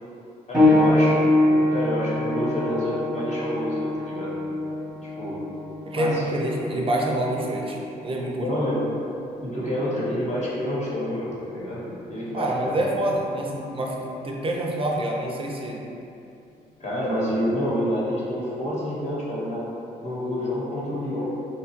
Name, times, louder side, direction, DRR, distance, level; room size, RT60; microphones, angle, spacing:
voice 1, 0.5-4.3 5.2-5.4 5.9-6.3 8.3-8.8 9.4-12.8 16.8-19.6 20.0-21.3, equal, 35° left, -7 dB, 1.0 m, -28 dB
sound 1, 0.5-10.8 11.7-11.8 12.6-12.7, left 1 dB, 5° right, 0.9 m, -25 dB
voice 2, 5.9-8.5 12.3-15.8, right 1 dB, 25° right, -1 dB, 0.5 m, -27 dB
2.8 x 2.3 x 2.9 m, 2.8 s
hypercardioid pair, 50°, 20 cm